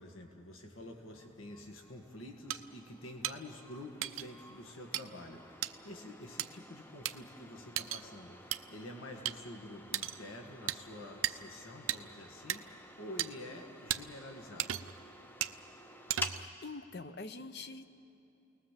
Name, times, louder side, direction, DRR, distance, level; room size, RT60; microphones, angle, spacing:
voice 1, 0.0-14.8, left 1 dB, 75° left, 3 dB, 1.8 m, -48 dB
sound 1, 0.7-16.5, left 1 dB, 10° left, 0.6 m, -50 dB
sound 2, 2.5-2.6 3.2-3.4 4.0-4.3 4.9-5.0 5.6-5.7 6.4-6.5 7.0-7.1 7.8-8.0 8.5-8.6 9.2-9.4 9.9-10.2 10.7-10.8 11.2-11.3 11.9-12.0 12.5-12.6 13.2-13.3 13.9-14.0 14.6-15.0 15.4-15.6 16.1-16.5, right 12 dB, 80° right, 0.6 m, -35 dB
voice 2, 16.3-18.0, left 3 dB, 50° left, 11 dB, 0.8 m, -45 dB
29.5 x 19.5 x 7.5 m, 2.9 s
head